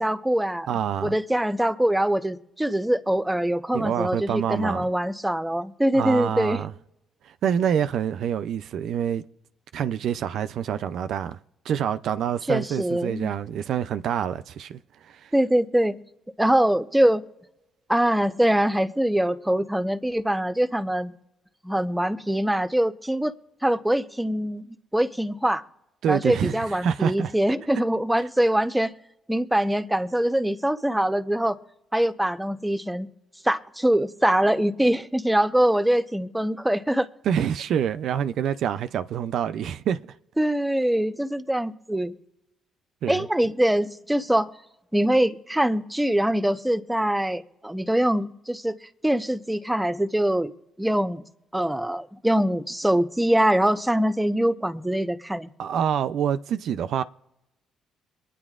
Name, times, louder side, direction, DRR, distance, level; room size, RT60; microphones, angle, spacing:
voice 1, 0.0-0.7 1.0-6.6 12.5-13.3 15.3-16.0 16.4-17.2 17.9-21.1 21.6-23.3 23.6-24.6 24.9-25.6 26.1-29.0 29.3-31.6 31.9-33.1 33.4-37.1 40.4-42.1 43.1-44.5 44.9-48.8 49.0-50.5 50.8-51.2 51.5-55.5, right 1 dB, 10° right, 0.9 m, -23 dB
voice 2, 0.7-1.2 3.7-4.9 5.9-6.7 7.3-9.2 9.7-11.4 11.7-15.3 26.0-27.3 37.2-40.1 43.0-43.3 55.6-57.0, right 9 dB, 70° right, 0.4 m, -26 dB
23.0 x 9.9 x 2.5 m
supercardioid pair, 65°, 0 cm